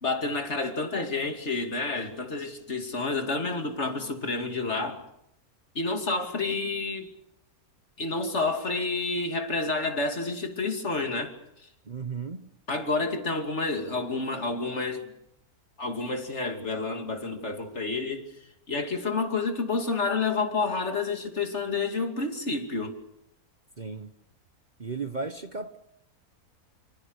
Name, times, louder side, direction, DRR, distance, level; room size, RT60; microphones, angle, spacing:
voice 1, 0.0-5.0 5.7-7.1 8.0-11.7 12.7-15.1 15.8-18.2 18.7-22.9, left 3 dB, 50° left, 2.9 m, -29 dB
voice 2, 11.9-12.5 23.8-24.1 24.8-25.8, right 4 dB, 35° right, 1.0 m, -35 dB
26.0 x 26.0 x 6.6 m
omnidirectional pair, 1.6 m